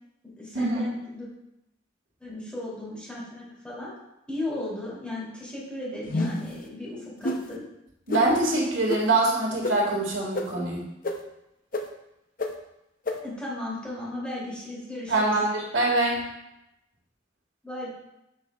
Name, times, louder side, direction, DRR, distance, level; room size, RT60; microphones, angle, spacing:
voice 1, 0.4-1.3 2.2-3.9 4.3-7.6 13.2-15.3 17.6-17.9, left 1 dB, 5° left, -7 dB, 3.0 m, -36 dB
sound 1, 6.1-6.5 7.2-7.4 8.1-8.2 8.9-9.0 9.6-9.7 10.3-10.4 11.0-11.1 11.7-11.8 12.4-12.5 13.1-13.2, left 1 dB, 50° left, 0.7 m, -27 dB
voice 2, 8.1-10.9 15.1-16.2, right 2 dB, 90° right, -2 dB, 2.2 m, -24 dB
8.3 x 7.8 x 2.4 m, 0.86 s
head